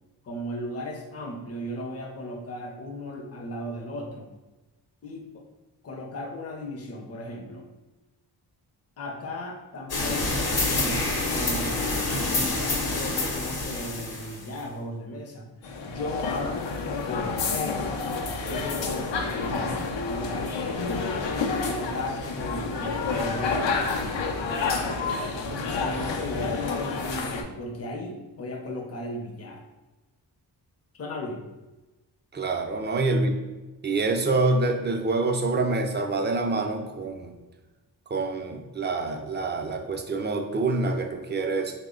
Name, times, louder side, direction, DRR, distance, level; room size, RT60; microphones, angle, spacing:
voice 1, 0.2-4.3 5.0-5.5 5.8-7.7 9.0-11.8 12.3-15.5 15.8-18.0 18.4-23.9 24.4-29.6 30.9-31.5, left 1 dB, 35° left, 2 dB, 0.6 m, -36 dB
sound 1, 9.9-14.6, left 2 dB, 60° left, 0.9 m, -27 dB
sound 2, 15.6-27.4, left 4 dB, 85° left, 0.6 m, -29 dB
voice 2, 32.3-33.3 33.8-37.3 38.1-41.7, right 3 dB, 25° right, 3 dB, 0.4 m, -26 dB
3.5 x 2.1 x 3.6 m, 1.1 s
cardioid pair, 75°, 42 cm